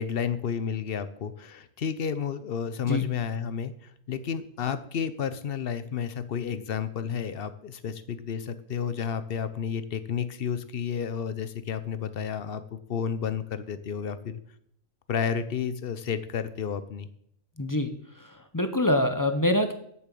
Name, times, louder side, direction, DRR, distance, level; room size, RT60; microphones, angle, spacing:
voice 1, 0.0-3.7 4.1-14.4 15.1-17.1, left 7 dB, 55° left, 13 dB, 0.7 m, -31 dB
voice 2, 17.6-17.9 18.5-19.7, left 1 dB, 20° left, 7 dB, 0.5 m, -24 dB
7.5 x 6.8 x 7.6 m, 0.70 s
omnidirectional pair, 1.4 m